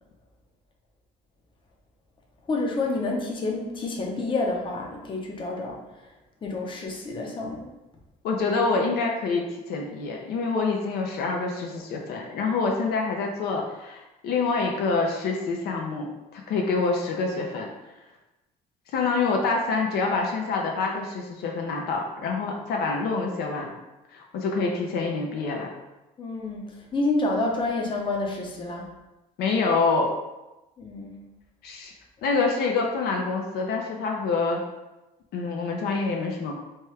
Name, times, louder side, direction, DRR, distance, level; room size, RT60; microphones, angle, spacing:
voice 1, 2.5-5.8 6.4-7.7 26.2-28.8 30.8-31.2, left 2 dB, 30° left, 0 dB, 0.6 m, -28 dB
voice 2, 8.2-16.1 16.3-17.7 18.9-23.7 24.1-25.7 29.4-30.1 31.6-31.9 32.2-34.6 35.3-36.6, left 4 dB, 70° left, 0 dB, 0.5 m, -26 dB
2.9 x 2.3 x 3.1 m, 1.0 s
cardioid pair, 110°, 17 cm